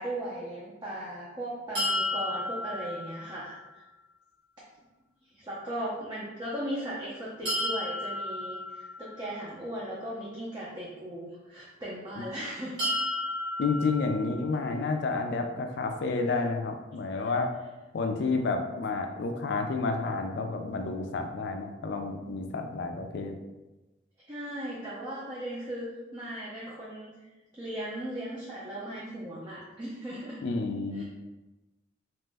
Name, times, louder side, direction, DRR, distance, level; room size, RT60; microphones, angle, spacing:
voice 1, 0.0-3.8 5.3-12.9 17.2-17.3 24.3-27.2 27.6-30.4 31.0-31.1, right 1 dB, 20° right, -7 dB, 0.5 m, -37 dB
sound 1, 1.7-3.7 7.4-9.5 12.8-14.8, left 1 dB, 70° right, 1.3 m, -33 dB
voice 2, 13.6-17.5 17.9-23.3 30.4-31.0, left 3 dB, 60° left, 4 dB, 0.3 m, -30 dB
2.9 x 2.1 x 3.3 m, 1.1 s
head